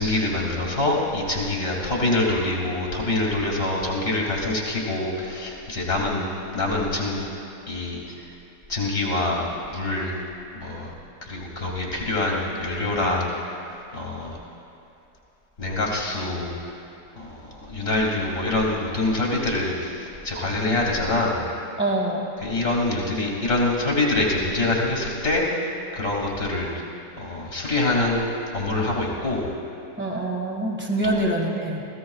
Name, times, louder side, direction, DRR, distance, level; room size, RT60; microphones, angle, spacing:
voice 1, 0.0-7.2 7.7-8.0 8.7-10.1 10.5-10.9 11.2-13.3 13.9-14.4 15.6-16.6 17.1-21.4 22.4-25.5 25.9-26.8 27.2-28.2 28.5-29.4, left 2 dB, 35° left, -3 dB, 2.7 m, -25 dB
voice 2, 21.8-22.3 30.0-31.9, right 1 dB, 5° right, 0 dB, 1.5 m, -25 dB
29.0 x 16.0 x 2.4 m, 2.8 s
omnidirectional pair, 1.8 m